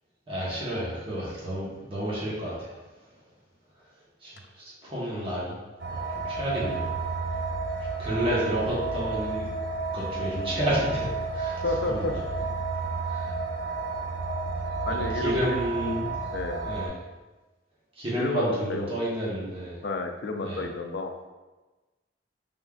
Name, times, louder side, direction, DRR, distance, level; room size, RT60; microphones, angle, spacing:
voice 1, 0.3-2.7 4.2-4.3 4.8-5.6 5.9-6.9 8.0-9.5 9.9-11.6 11.9-12.2 13.1-13.3 15.1-16.0 16.6-16.9 18.0-19.8 20.4-20.6, equal, 30° right, -8 dB, 1.1 m, -30 dB
sound 1, 5.8-16.9, right 4 dB, 60° right, 0.8 m, -31 dB
voice 2, 11.6-12.1 14.9-15.6 16.3-16.6 18.2-18.9 19.8-21.1, left 3 dB, 70° left, 4 dB, 0.5 m, -30 dB
5.2 x 3.7 x 2.4 m, 1.2 s
head